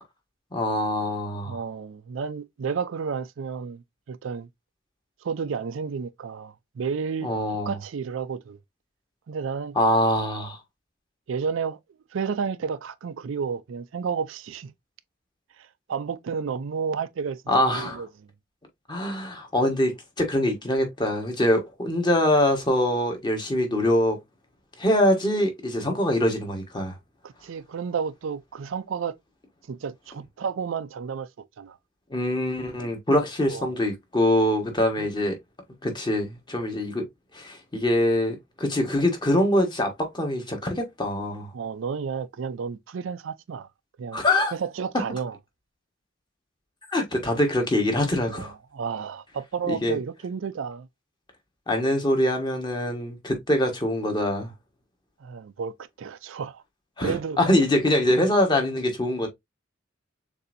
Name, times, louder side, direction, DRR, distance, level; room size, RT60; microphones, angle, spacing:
voice 1, 0.5-1.6 7.2-7.8 9.7-10.6 17.5-18.0 18.9-24.2 24.8-27.0 32.1-35.4 35.8-37.1 37.3-41.5 44.1-44.5 46.9-48.5 49.7-50.0 51.7-54.5 57.0-59.3, left 1 dB, 25° left, 1.3 m, -24 dB
voice 2, 1.4-4.5 5.2-7.3 7.6-8.6 9.3-9.8 11.3-11.8 12.1-14.7 15.6-17.4 17.7-18.1 27.2-29.1 29.7-31.3 31.6-31.8 33.5-33.7 35.0-35.1 41.5-43.7 44.0-44.2 44.5-45.3 48.3-50.9 55.2-56.6 57.0-57.4, right 6 dB, 75° right, 0.4 m, -31 dB
6.6 x 2.7 x 2.5 m
head